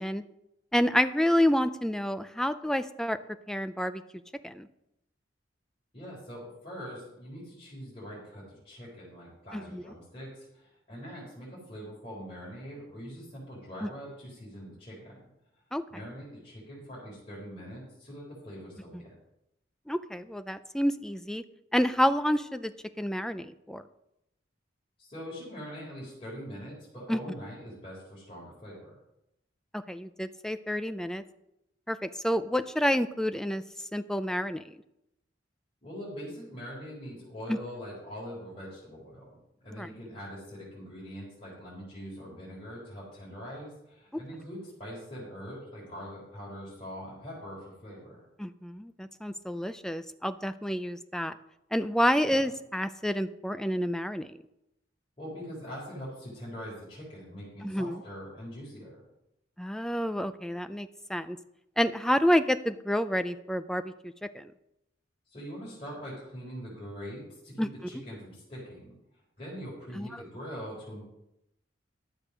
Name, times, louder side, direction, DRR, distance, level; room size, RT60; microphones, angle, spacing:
voice 1, 0.7-3.2 3.5-4.0 4.4-4.7 9.5-9.8 13.8-13.9 15.7-15.8 18.9-19.0 19.9-21.4 21.7-22.7 23.0-23.8 27.1-27.2 29.7-31.2 31.9-33.6 33.9-34.6 37.5-37.6 39.7-39.9 48.4-51.3 51.7-54.3 57.6-58.0 59.6-61.4 61.8-64.5 67.6-67.7 70.0-70.1, equal, 5° left, 11 dB, 0.4 m, -29 dB
voice 2, 5.9-15.2 15.9-19.1 25.0-28.9 35.8-39.3 39.6-48.2 52.2-52.4 55.2-59.0 65.3-68.9 69.4-71.0, equal, 30° left, -7 dB, 3.9 m, -43 dB
12.0 x 6.7 x 6.1 m, 0.84 s
head